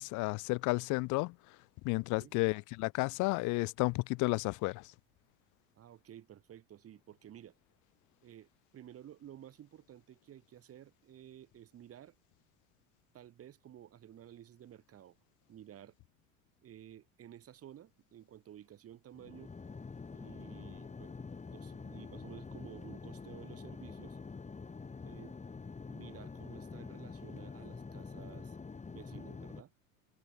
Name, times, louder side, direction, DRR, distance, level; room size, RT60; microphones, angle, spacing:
voice 1, 0.0-1.6 1.8-4.9, left 25 dB, 45° left, 0.8 m, -32 dB
voice 2, 1.9-2.3 5.7-7.6 8.2-12.2 13.1-15.2 15.5-15.9 16.6-19.5 20.1-21.2 21.5-24.2 25.0-25.4 25.9-28.6 28.9-29.7, right 11 dB, 35° right, 2.2 m, -53 dB
sound 1, 19.1-29.6, left 4 dB, 15° left, 2.8 m, -46 dB
figure-of-eight pair, 75°, 40 cm